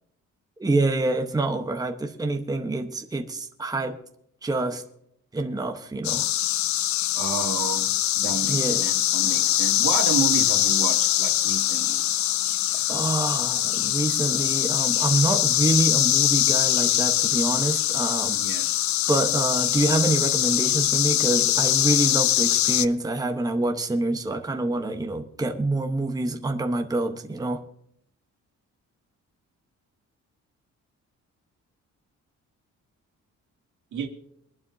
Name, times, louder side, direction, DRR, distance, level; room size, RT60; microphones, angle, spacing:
voice 1, 0.6-4.0 4.4-4.8 5.3-6.3 8.5-8.9 12.9-18.7 19.1-27.6, right 2 dB, 10° right, 1.0 m, -26 dB
sound 1, 6.0-22.9, left 13 dB, 70° left, 0.5 m, -23 dB
voice 2, 7.1-12.0 18.4-18.7 33.9-34.1, right 6 dB, 75° right, 2.3 m, -31 dB
23.5 x 11.5 x 2.7 m
cardioid pair, 150°, 30 cm